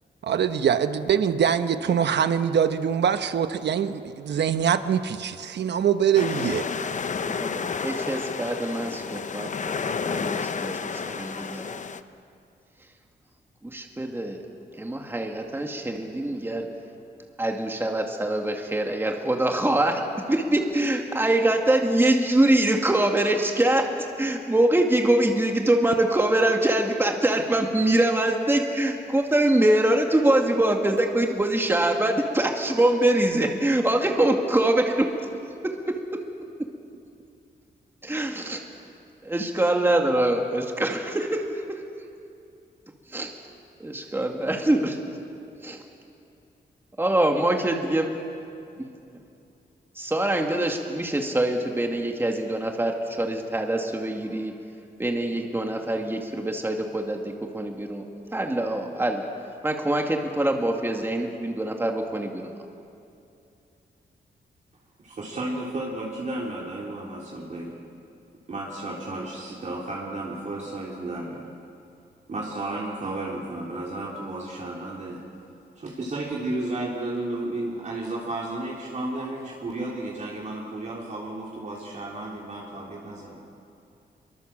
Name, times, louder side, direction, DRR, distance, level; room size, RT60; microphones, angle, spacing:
voice 1, 0.2-6.7, right 8 dB, 75° right, 10 dB, 1.1 m, -23 dB
sound 1, 6.1-12.0, left 5 dB, 45° left, 0.9 m, -31 dB
voice 2, 7.3-9.5 9.8-11.8 13.6-14.4 14.8-16.7 17.4-35.1 38.0-38.6 39.2-41.5 43.1-43.3 43.8-45.0 45.6-45.8 47.0-48.2 48.8-48.9 50.0-54.5 55.0-58.0 58.3-59.3 59.6-62.4, right 1 dB, 10° right, 2 dB, 2.1 m, -24 dB
voice 3, 65.0-67.7 68.5-71.5 72.3-75.2 75.8-83.4, right 2 dB, 45° right, -4 dB, 3.4 m, -33 dB
26.5 x 23.5 x 7.6 m, 2.6 s
wide cardioid pair, 115°, 18 cm